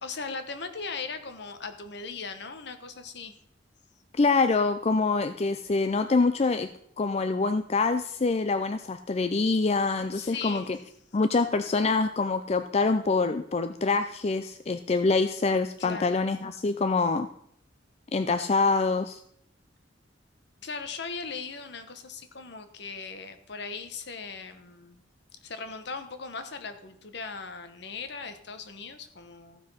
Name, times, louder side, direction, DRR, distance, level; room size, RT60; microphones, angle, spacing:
voice 1, 0.0-3.4 10.1-10.7 15.8-16.2 20.6-25.0 25.4-29.6, left 4 dB, 65° left, 9 dB, 1.2 m, -38 dB
voice 2, 4.2-6.7 7.0-10.8 11.1-17.3 18.1-19.2, left 3 dB, 35° left, 9 dB, 0.5 m, -25 dB
14.5 x 6.1 x 5.7 m, 0.69 s
head